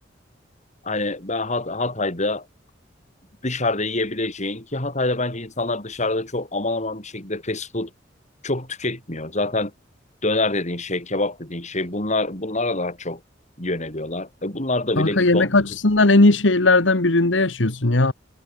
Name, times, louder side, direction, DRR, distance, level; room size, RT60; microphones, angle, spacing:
voice 1, 0.8-2.5 3.4-7.9 8.4-9.7 10.2-13.2 13.6-15.6, left 2 dB, 40° left, 6.9 m, -26 dB
voice 2, 15.0-18.1, left 2 dB, 80° left, 1.8 m, -17 dB
head